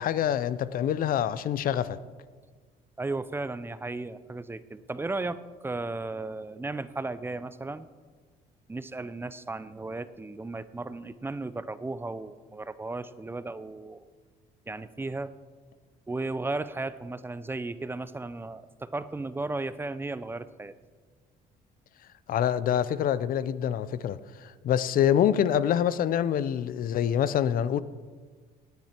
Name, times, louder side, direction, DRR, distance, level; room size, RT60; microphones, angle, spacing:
voice 1, 0.0-2.0 22.3-24.2 24.6-27.8, left 9 dB, 55° left, 0.6 m, -25 dB
voice 2, 3.0-7.9 8.7-14.1 14.7-15.3 16.1-20.7, right 2 dB, 15° right, 0.5 m, -35 dB
17.5 x 9.3 x 4.5 m
cardioid pair, 110°, 17 cm